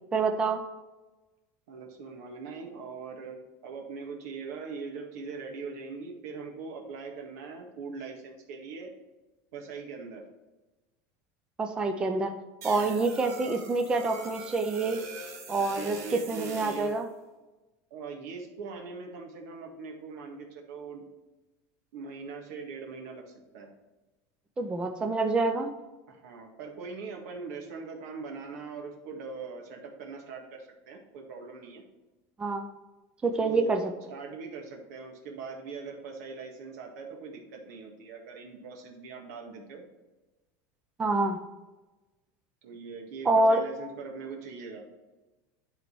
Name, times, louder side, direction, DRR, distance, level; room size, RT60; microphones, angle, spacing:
voice 1, 0.1-0.6 11.6-12.3 12.6-15.0 15.5-17.0 24.6-25.7 32.4-32.7 33.2-33.8 41.0-41.4 43.3-43.6, right 3 dB, 10° right, 5 dB, 0.4 m, -26 dB
voice 2, 1.7-8.9 9.5-10.2 12.7-13.1 15.5-17.0 17.9-21.0 21.9-23.7 26.1-31.8 33.2-39.8 42.6-44.8, right 4 dB, 80° right, 1 dB, 1.9 m, -41 dB
sound 1, 12.6-17.0, right 3 dB, 35° right, 1.3 m, -43 dB
11.0 x 4.0 x 4.6 m, 1.1 s
cardioid pair, 175°, 9 cm